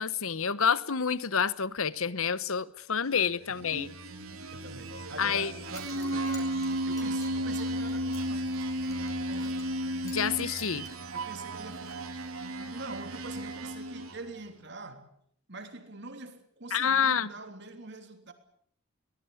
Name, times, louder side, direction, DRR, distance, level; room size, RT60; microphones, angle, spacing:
voice 1, 0.0-3.9 5.2-5.5 10.0-10.9 16.7-17.3, left 7 dB, 75° left, 1.0 m, -28 dB
voice 2, 3.5-3.9 4.5-8.4 9.3-9.7 11.1-12.0 12.5-15.1 15.5-18.3, right 2 dB, 50° right, 3.2 m, -44 dB
sound 1, 3.5-14.4, right 1 dB, 75° right, 3.0 m, -34 dB
Zipper (clothing) / Coin (dropping), 5.6-9.8 10.0-10.3 10.6-12.3, left 3 dB, 15° left, 4.8 m, -52 dB
22.5 x 19.5 x 8.5 m
head